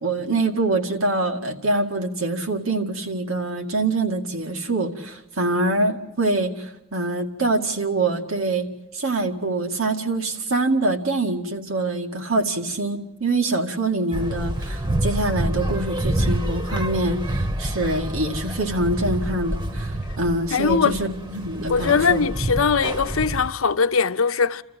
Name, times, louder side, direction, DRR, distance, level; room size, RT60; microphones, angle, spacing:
voice 1, 0.0-8.7 8.9-22.3, right 2 dB, 85° right, 2.2 m, -25 dB
sound 1, 14.1-23.5, right 1 dB, 25° right, 1.1 m, -27 dB
voice 2, 20.5-21.0 21.7-24.6, left 5 dB, 80° left, 0.8 m, -20 dB
29.5 x 14.5 x 9.2 m
head